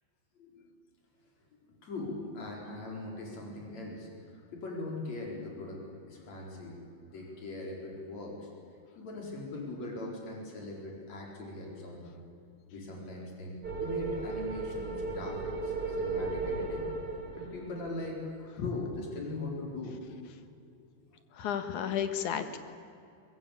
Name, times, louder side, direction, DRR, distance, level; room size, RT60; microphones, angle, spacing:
voice 1, 1.8-4.1 4.5-6.8 7.1-8.4 9.0-12.1 12.7-16.8 17.4-18.2 18.5-20.0, left 2 dB, 60° left, -1 dB, 5.9 m, -40 dB
sound 1, 13.6-18.0, right 3 dB, 30° right, 4.2 m, -35 dB
voice 2, 21.3-22.6, left 8 dB, 80° left, 9 dB, 2.9 m, -32 dB
22.5 x 21.0 x 8.7 m, 2.6 s
omnidirectional pair, 3.5 m